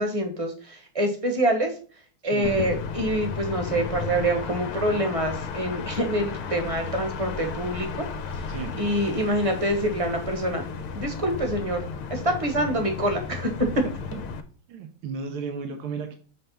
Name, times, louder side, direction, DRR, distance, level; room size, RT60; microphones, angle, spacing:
voice 1, 0.0-1.7 2.2-8.1 8.8-10.7 10.9-11.8 12.1-13.5, right 1 dB, 20° right, 4 dB, 1.0 m, -26 dB
voice 2, 2.2-2.6 8.5-8.8 14.1-14.2 14.7-16.2, right 5 dB, 80° right, 5 dB, 1.7 m, -34 dB
sound 1, 2.4-14.4, left 5 dB, 85° left, 1.7 m, -34 dB
7.7 x 3.4 x 5.6 m, 0.43 s
omnidirectional pair, 2.3 m